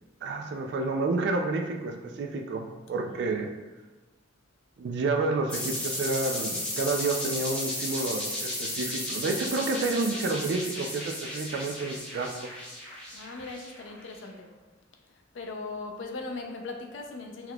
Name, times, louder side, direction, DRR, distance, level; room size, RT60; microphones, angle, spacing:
voice 1, 0.2-3.5 4.8-12.5, right 3 dB, 60° right, 0.3 m, -30 dB
voice 2, 3.0-3.3 13.1-14.5 15.3-17.5, left 3 dB, 75° left, 0.4 m, -39 dB
sound 1, 5.5-14.0, left 1 dB, 5° left, 0.9 m, -34 dB
3.8 x 3.0 x 2.2 m
head